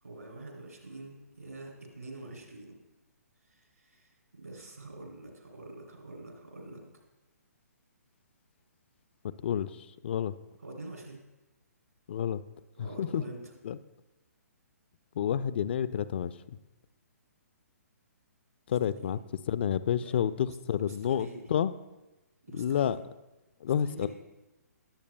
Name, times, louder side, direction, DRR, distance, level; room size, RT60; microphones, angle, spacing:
voice 1, 0.0-2.8 3.5-6.8 10.6-11.2 12.8-13.4 19.0-19.2 20.0-20.2 20.4-21.5 22.4-23.0 23.8-24.1, right 2 dB, 75° right, 1 dB, 2.9 m, -46 dB
voice 2, 9.2-9.7 10.0-10.3 12.1-12.4 12.8-13.2 13.6-13.8 15.2-16.3 18.7-19.2 19.5-21.7 22.5-23.0 23.6-24.1, left 9 dB, 40° left, 16 dB, 0.4 m, -29 dB
19.0 x 8.4 x 2.2 m, 1.0 s
figure-of-eight pair, 130°, 9 cm